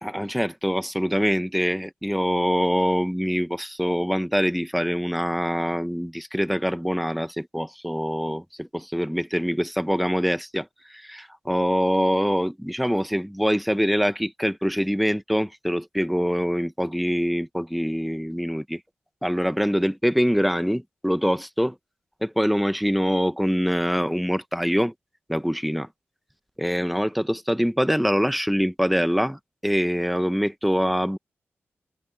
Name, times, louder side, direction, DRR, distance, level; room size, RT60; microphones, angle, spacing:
voice 1, 0.0-18.8 19.2-21.8 22.2-24.9 25.3-25.9 26.6-31.2, equal, ahead, 1.3 m, -24 dB
open air
cardioid pair, 75°, 5 cm